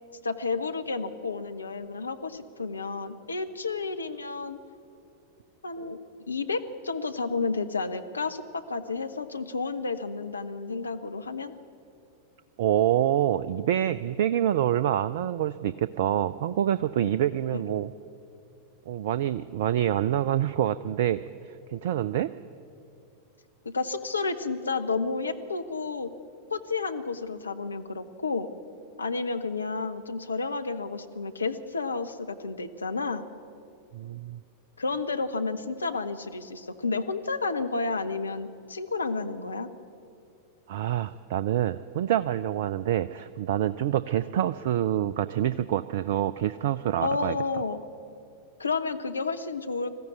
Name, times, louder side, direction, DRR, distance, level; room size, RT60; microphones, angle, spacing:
voice 1, 0.2-4.6 5.6-6.0 6.3-11.5 17.5-17.6 23.6-26.1 26.5-28.5 29.0-33.3 34.8-39.7 47.0-47.8 48.6-49.9, left 4 dB, 75° left, 8 dB, 1.1 m, -31 dB
voice 2, 12.6-17.9 18.9-22.3 33.9-34.4 40.7-47.4, right 11 dB, 55° right, 15 dB, 0.4 m, -26 dB
20.5 x 14.5 x 9.4 m, 2.6 s
figure-of-eight pair, 90°, 0 cm